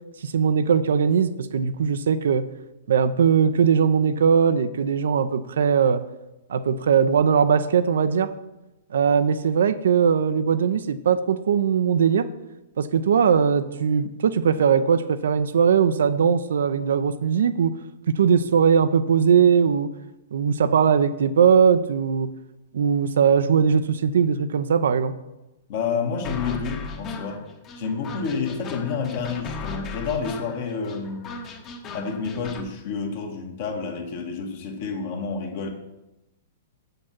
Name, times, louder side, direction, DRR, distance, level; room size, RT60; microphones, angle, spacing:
voice 1, 0.2-2.4 2.9-6.0 6.5-8.3 8.9-12.3 12.8-17.7 18.1-19.9 20.3-22.3 22.7-25.1, right 7 dB, 65° right, 12 dB, 0.5 m, -20 dB
voice 2, 25.7-27.4 27.8-31.3 31.9-35.7, left 5 dB, 50° left, 3 dB, 1.6 m, -29 dB
sound 1, 26.2-32.7, left 4 dB, 30° left, 1.2 m, -37 dB
7.3 x 6.5 x 5.9 m, 0.98 s
figure-of-eight pair, 110°, 0 cm